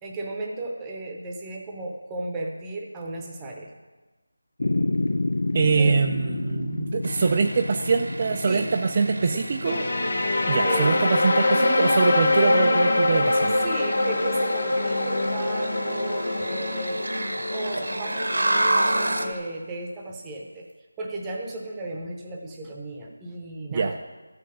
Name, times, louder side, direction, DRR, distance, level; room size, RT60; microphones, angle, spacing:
voice 1, 0.0-3.7 5.8-6.0 8.4-8.7 9.3-9.4 10.6-11.0 13.6-17.0 17.5-20.7 21.0-24.0, right 2 dB, 10° right, 0 dB, 0.8 m, -34 dB
sound 1, 4.6-11.1, left 2 dB, 65° left, 0.4 m, -30 dB
voice 2, 5.5-9.9 10.5-13.6 23.7-23.9, right 5 dB, 25° right, 5 dB, 0.3 m, -24 dB
sound 2, 7.0-19.4, right 1 dB, 80° right, 1.2 m, -31 dB
sound 3, 9.6-19.3, left 2 dB, 45° left, 1.0 m, -24 dB
13.5 x 5.8 x 6.2 m, 1.2 s
figure-of-eight pair, 175°, 0 cm